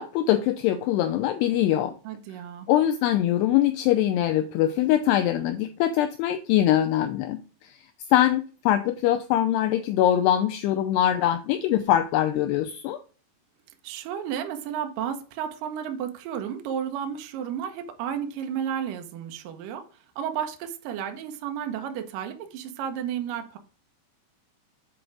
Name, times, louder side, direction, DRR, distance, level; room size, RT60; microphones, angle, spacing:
voice 1, 0.0-1.9 2.7-7.7 8.1-13.0, left 12 dB, 85° left, 2.4 m, -23 dB
voice 2, 2.0-2.7 13.8-19.8 20.2-23.6, right 9 dB, 90° right, 1.9 m, -32 dB
7.7 x 3.8 x 4.7 m
omnidirectional pair, 5.3 m